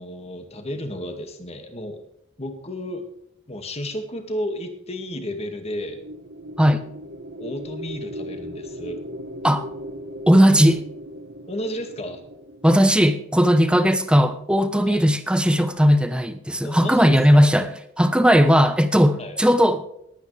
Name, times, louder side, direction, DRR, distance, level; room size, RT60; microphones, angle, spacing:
voice 1, 0.0-2.0 2.4-3.0 3.5-6.0 7.4-9.0 11.5-12.2 14.8-15.0 16.6-17.5 19.2-19.4, left 1 dB, 30° left, 5 dB, 2.1 m, -32 dB
sound 1, 5.7-13.9, equal, 70° right, 1.3 m, -38 dB
voice 2, 10.3-10.8 12.6-17.7 18.0-19.8, equal, 5° right, 10 dB, 1.0 m, -17 dB
20.5 x 9.2 x 3.4 m, 0.74 s
head